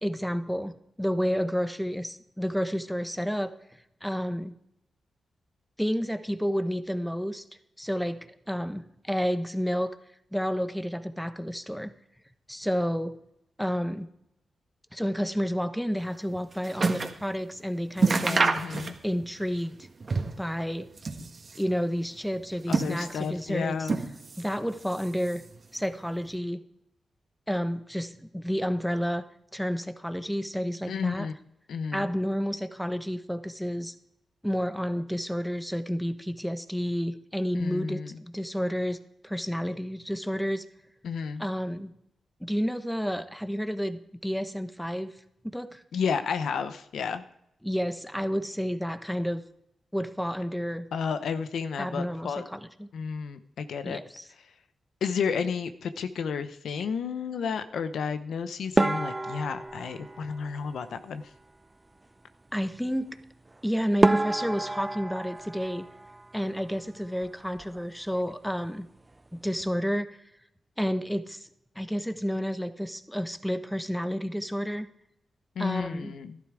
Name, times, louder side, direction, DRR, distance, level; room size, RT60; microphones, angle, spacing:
voice 1, 0.0-3.5 4.0-4.6 5.8-7.4 7.8-10.0 10.3-11.9 12.5-13.2 13.6-14.1 14.9-18.5 19.0-19.8 20.4-20.9 21.5-23.9 24.4-25.4 25.7-26.6 27.5-29.2 29.5-31.3 31.9-33.9 34.4-39.0 39.2-40.7 41.4-41.9 42.4-45.1 45.4-45.8 47.6-49.4 49.9-50.9 51.8-52.9 53.8-54.3 62.5-63.2 63.6-65.8 66.3-68.9 69.3-70.2 70.8-71.5 71.7-74.9 75.6-76.1, equal, ahead, 10 dB, 1.1 m, -30 dB
sound 1, 16.1-17.2 17.6-17.7 18.0-19.3 19.5-20.5 20.9-21.7 22.3-23.4 23.8-24.5 24.8-25.6 26.3-26.4, right 4 dB, 50° right, 1.6 m, -28 dB
voice 2, 18.3-19.0 22.7-24.0 30.9-31.3 31.7-32.1 37.6-38.2 41.0-41.4 45.9-47.2 50.9-52.4 52.9-54.0 55.0-61.3 75.6-76.4, left 6 dB, 80° left, 10 dB, 0.8 m, -32 dB
sound 2, 58.8-61.2 63.5-63.6 64.0-66.8 67.0-67.8 68.1-68.3 68.6-68.7 69.4-69.7, right 2 dB, 25° right, 0.5 m, -29 dB
12.0 x 11.0 x 4.8 m, 0.80 s
supercardioid pair, 50°, 0 cm